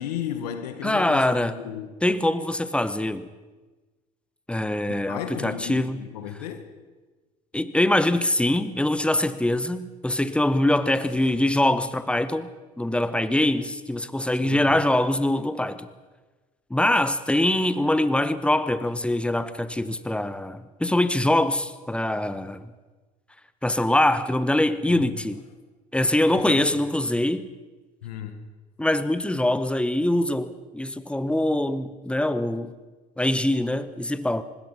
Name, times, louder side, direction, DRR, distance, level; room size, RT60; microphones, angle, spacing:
voice 1, 0.0-2.0 4.9-6.7 11.2-11.3 14.4-14.8 24.8-25.0 26.3-26.7 28.0-28.4, left 9 dB, 75° left, 1.6 m, -34 dB
voice 2, 0.8-1.6 2.0-3.3 4.5-6.0 7.5-12.5 12.8-15.9 16.7-22.7 23.6-25.4 25.9-27.5 28.8-32.7 33.2-34.4, left 1 dB, 5° left, 1.4 m, -23 dB
24.5 x 20.5 x 5.5 m
hypercardioid pair, 60°, 20 cm